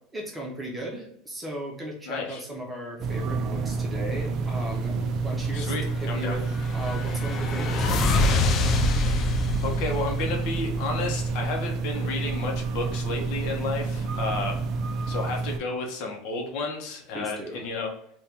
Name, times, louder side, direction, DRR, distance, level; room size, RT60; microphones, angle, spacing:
voice 1, 0.1-4.9 5.2-6.4 6.7-8.2 17.1-17.7, right 1 dB, 10° right, -1 dB, 0.8 m, -36 dB
voice 2, 2.0-2.4 5.5-6.4 9.6-14.6 15.1-17.9, left 3 dB, 60° left, 2 dB, 0.8 m, -32 dB
Night Parking Garage Ambience, 3.0-15.6, right 3 dB, 45° right, 0.3 m, -29 dB
sound 1, 4.3-14.7, right 3 dB, 70° right, 0.7 m, -42 dB
sound 2, 6.1-11.1, left 3 dB, 40° left, 0.4 m, -26 dB
2.7 x 2.3 x 3.5 m, 0.72 s
supercardioid pair, 125°, 0 cm